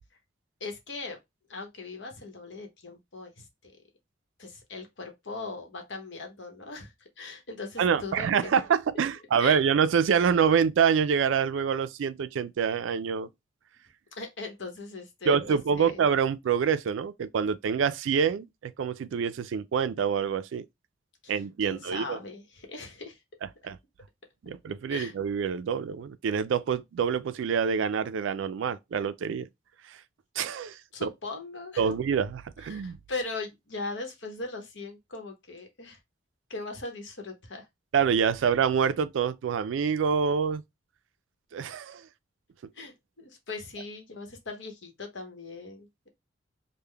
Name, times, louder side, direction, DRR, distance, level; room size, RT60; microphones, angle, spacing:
voice 1, 0.6-1.2 1.5-3.7 4.4-8.5 9.4-9.6 14.2-16.0 21.2-23.2 24.9-25.1 30.9-31.9 32.6-36.0 36.5-37.7 42.7-46.1, left 3 dB, 65° left, 1.0 m, -39 dB
voice 2, 7.8-13.3 15.3-20.7 21.3-22.2 23.4-23.8 24.4-29.5 29.9-30.0 30.4-31.1 31.8-33.0 37.9-40.6 41.5-42.0, right 6 dB, 75° right, 0.3 m, -26 dB
3.6 x 2.1 x 3.3 m
head